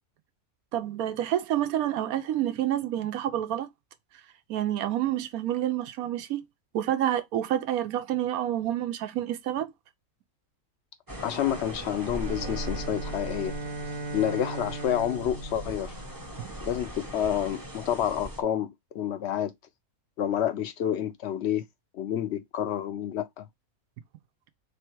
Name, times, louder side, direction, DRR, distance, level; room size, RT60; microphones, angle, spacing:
voice 1, 0.7-3.7 4.5-6.4 6.7-9.7 16.4-16.5, right 11 dB, 85° right, 1.1 m, -28 dB
sound 1, 11.1-18.4, equal, 20° right, 0.7 m, -40 dB
voice 2, 11.2-13.6 14.1-15.9 16.7-19.5 20.2-21.6 21.9-23.5, left 10 dB, 65° left, 0.7 m, -29 dB
Bowed string instrument, 12.0-16.6, right 3 dB, 65° right, 1.3 m, -38 dB
3.4 x 3.2 x 4.4 m
omnidirectional pair, 1.5 m